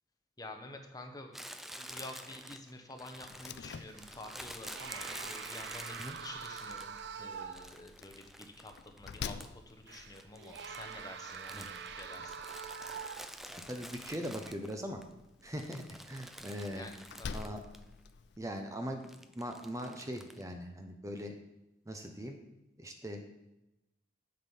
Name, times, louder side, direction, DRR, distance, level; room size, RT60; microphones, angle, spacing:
voice 1, 0.4-1.3 1.8-12.4 16.7-16.9 17.2-17.5, left 2 dB, 20° left, 4 dB, 0.9 m, -49 dB
Crumpling crinkling, 1.3-7.1 7.5-9.7 10.0-15.0 15.4-17.8 18.1-18.2 19.0-20.4, equal, ahead, 0.4 m, -49 dB
Slam, 3.3-18.4, left 5 dB, 65° left, 0.4 m, -50 dB
sound 1, 3.7-4.2 4.6-7.8 8.2-8.3 9.9-13.6 14.3-14.5, right 6 dB, 65° right, 0.5 m, -45 dB
voice 2, 13.5-15.0 15.4-16.9 17.3-17.6 18.4-21.4 21.8-22.4 22.8-23.2, equal, 15° right, 4 dB, 0.8 m, -40 dB
7.7 x 7.4 x 5.6 m, 0.95 s
head